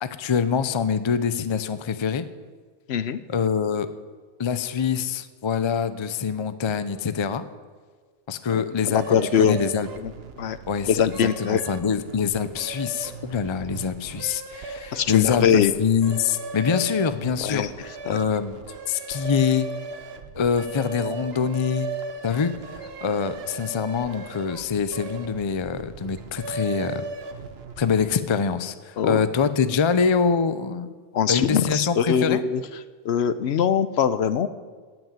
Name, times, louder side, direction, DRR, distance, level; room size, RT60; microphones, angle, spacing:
voice 1, 0.0-2.3 3.3-3.9 4.4-7.5 8.3-9.9 10.7-18.6 18.9-19.7 20.4-21.9 22.2-27.0 27.8-30.9 31.3-32.4, left 6 dB, 35° left, 12 dB, 0.5 m, -25 dB
voice 2, 2.9-3.2 8.9-9.6 10.0-10.1 10.4-10.6 10.9-11.6 14.9-15.7 17.4-17.7 18.1-18.2 29.0-29.2 31.1-32.6 33.0-34.5, left 8 dB, 70° left, 13 dB, 0.9 m, -22 dB
sound 1, 8.9-28.4, right 4 dB, 65° right, 1.1 m, -37 dB
16.5 x 6.2 x 8.8 m, 1.5 s
omnidirectional pair, 1.2 m